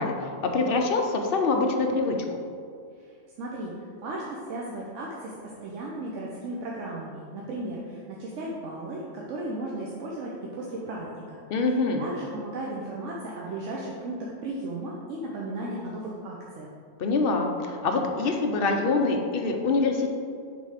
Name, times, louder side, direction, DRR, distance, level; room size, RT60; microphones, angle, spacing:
voice 1, 0.0-2.2 11.5-12.0 17.0-20.1, left 3 dB, 55° left, 3 dB, 0.8 m, -25 dB
voice 2, 3.0-5.3 5.6-11.4 11.6-16.7, right 2 dB, 85° right, -3 dB, 1.1 m, -35 dB
6.5 x 3.4 x 4.9 m, 2.2 s
omnidirectional pair, 1.2 m